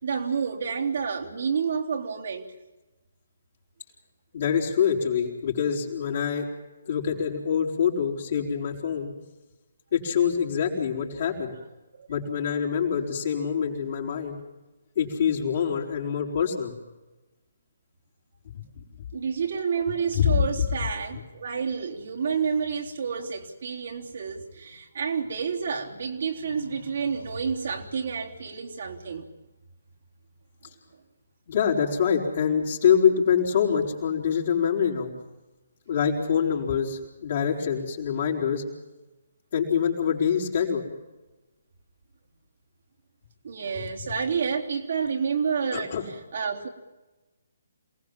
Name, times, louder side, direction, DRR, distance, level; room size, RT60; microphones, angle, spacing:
voice 1, 0.0-2.5 11.1-11.3 12.0-12.1 19.1-29.2 34.6-34.8 43.4-46.7, right 6 dB, 60° right, 1 dB, 3.5 m, -29 dB
voice 2, 4.3-6.4 6.9-9.1 9.9-11.5 12.1-14.4 14.9-16.7 20.1-20.5 31.5-35.1 35.9-38.6 39.5-40.8 43.8-43.9 45.7-46.0, left 7 dB, 50° left, -2 dB, 4.9 m, -25 dB
28.0 x 19.0 x 7.6 m, 1.1 s
figure-of-eight pair, 140°, 0 cm